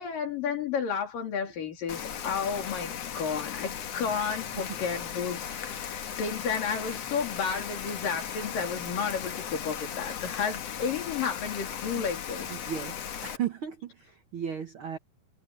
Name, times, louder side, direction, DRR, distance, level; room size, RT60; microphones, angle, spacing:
voice 1, 0.0-12.5, left 6 dB, 70° left, 4.9 m, -32 dB
Rain, 1.9-13.4, left 8 dB, 55° left, 2.2 m, -37 dB
sound 1, 5.4-6.2 6.5-7.7 8.0-8.6 8.9-9.1 9.9-10.4 11.0-11.1 12.5-12.6 13.0-13.3, right 3 dB, 40° right, 5.6 m, -54 dB
voice 2, 12.5-15.0, right 8 dB, 80° right, 1.2 m, -35 dB
omnidirectional pair, 4.1 m